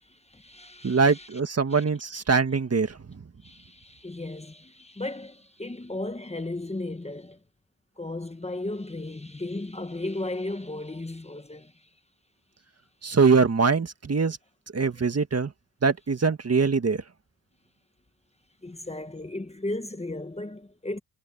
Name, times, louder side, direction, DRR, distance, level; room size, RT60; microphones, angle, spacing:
voice 1, 0.0-1.3 1.7-1.8 3.4-7.4 8.0-11.9 18.6-21.0, left 2 dB, 15° left, 1.2 m, -35 dB
voice 2, 0.8-3.0 13.0-14.4 14.7-15.5 15.8-17.0, right 5 dB, 35° right, 1.7 m, -23 dB
cardioid pair, 85°, 40 cm